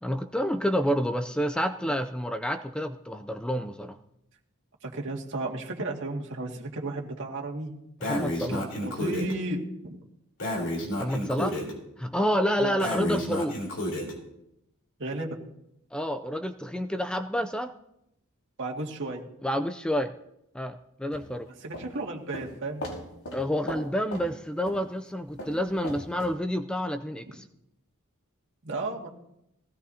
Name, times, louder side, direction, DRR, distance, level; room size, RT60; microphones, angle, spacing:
voice 1, 0.0-4.0 8.0-8.6 11.0-11.7 12.0-13.6 15.9-17.7 19.4-20.1 20.5-21.5 23.3-27.4, equal, 5° left, 8 dB, 0.4 m, -29 dB
voice 2, 4.8-7.7 8.5-10.0 12.6-12.8 15.0-15.4 18.6-19.2 21.6-22.8 28.6-29.1, right 2 dB, 60° right, 0 dB, 2.2 m, -33 dB
Breathing, 8.0-9.3 10.4-11.7 12.8-14.1, equal, 60° left, 3.5 m, -31 dB
sound 1, 21.1-21.9 22.3-22.5 22.8-23.0 23.3-23.4 23.7-23.9 24.1-24.3 24.7-24.8 25.4-26.3, equal, 90° left, 4.5 m, -37 dB
19.5 x 16.5 x 2.8 m, 0.82 s
head